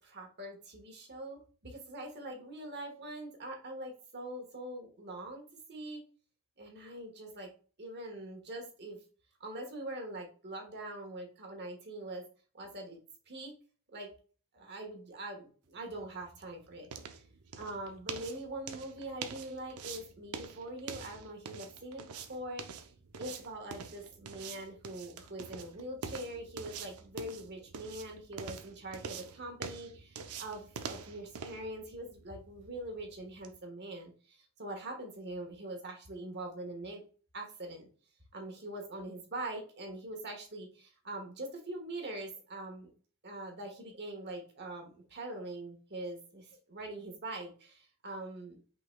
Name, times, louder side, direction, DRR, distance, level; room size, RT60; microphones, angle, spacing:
voice 1, 0.0-6.0 6.6-7.5 7.8-9.0 9.4-12.2 12.5-13.0 13.3-13.6 13.9-14.1 14.5-16.9 17.6-22.9 23.2-37.0 37.3-37.9 38.3-42.9 43.2-48.6, right 1 dB, 50° right, 3 dB, 1.4 m, -43 dB
sound 1, 15.8-33.6, right 6 dB, 85° right, 0.6 m, -46 dB
5.6 x 3.9 x 2.3 m, 0.39 s
head